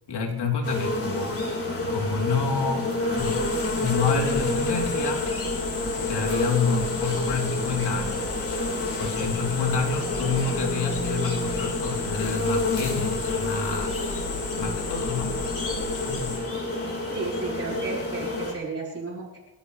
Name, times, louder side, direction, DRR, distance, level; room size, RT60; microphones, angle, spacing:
voice 1, 0.1-1.4 1.8-5.3 6.0-8.3 9.0-15.4 16.0-16.4, left 5 dB, 55° left, 2 dB, 3.6 m, -28 dB
sound 1, 0.6-18.5, left 2 dB, 30° left, 4.4 m, -29 dB
sound 2, 3.2-16.4, left 4 dB, 70° left, 6.3 m, -35 dB
voice 2, 17.1-19.4, right 4 dB, 30° right, -5 dB, 4.2 m, -33 dB
29.5 x 12.0 x 3.4 m, 1.1 s
cardioid pair, 125°, 49 cm